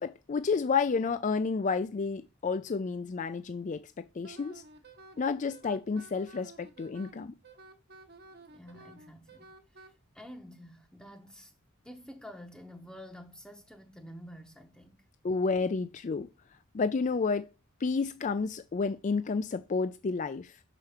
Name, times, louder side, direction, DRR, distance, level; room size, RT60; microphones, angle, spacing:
voice 1, 0.0-4.6 5.2-7.3 15.2-16.3 16.7-17.5 17.8-20.5, left 4 dB, 35° left, 0.4 m, -30 dB
Wind instrument woodwind instrument, 4.2-9.9, right 3 dB, 50° right, 1.0 m, -53 dB
voice 2, 8.5-9.9 10.1-11.5 11.8-15.0, equal, 5° left, 0.8 m, -49 dB
5.9 x 5.0 x 5.7 m
head